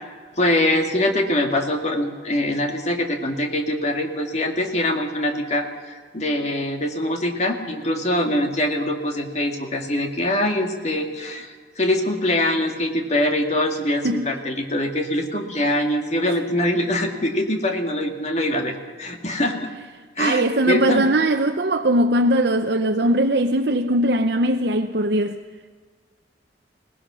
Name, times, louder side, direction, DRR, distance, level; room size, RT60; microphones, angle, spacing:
voice 1, 0.4-19.7 20.2-21.1, left 1 dB, 40° left, 2.1 m, -23 dB
voice 2, 20.2-25.4, right 1 dB, 65° right, 0.8 m, -20 dB
22.0 x 18.5 x 6.3 m
head